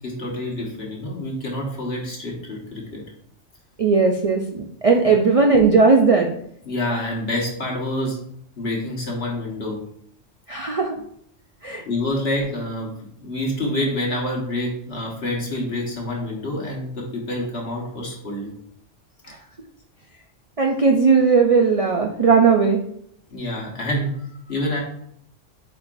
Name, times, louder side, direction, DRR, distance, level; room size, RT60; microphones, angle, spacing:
voice 1, 0.0-3.0 6.6-8.2 8.5-9.8 11.8-18.5 23.3-24.8, left 1 dB, 55° left, -2 dB, 1.7 m, -27 dB
voice 2, 3.8-6.3 10.5-10.9 11.6-11.8 19.3-19.4 20.6-22.8, right 4 dB, 45° right, 3 dB, 0.4 m, -17 dB
8.0 x 4.5 x 2.6 m, 0.68 s
omnidirectional pair, 1.3 m